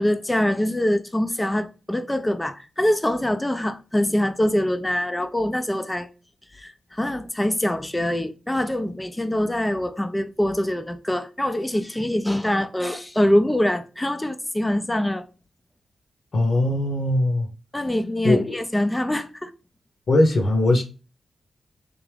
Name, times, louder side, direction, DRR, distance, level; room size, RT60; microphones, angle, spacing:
voice 1, 0.0-6.1 6.5-15.3 17.7-19.5, left 1 dB, 10° left, 0.5 m, -24 dB
voice 2, 16.3-17.5 18.2-18.5 20.1-20.8, left 1 dB, 55° left, 0.9 m, -20 dB
3.5 x 2.5 x 3.3 m
cardioid pair, 70°, 0 cm